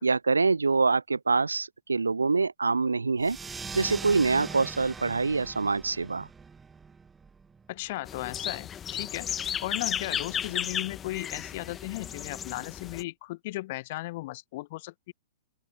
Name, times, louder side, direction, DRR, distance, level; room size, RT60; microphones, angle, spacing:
voice 1, 0.0-3.4 3.7-6.3, right 4 dB, 75° right, 0.4 m, -25 dB
sound 1, 3.2-8.3, right 5 dB, 10° right, 0.7 m, -42 dB
voice 2, 7.7-9.3 9.6-15.1, left 19 dB, 45° left, 1.2 m, -36 dB
sound 2, 8.1-13.0, left 9 dB, 20° left, 1.1 m, -34 dB
open air
figure-of-eight pair, 110°, 0 cm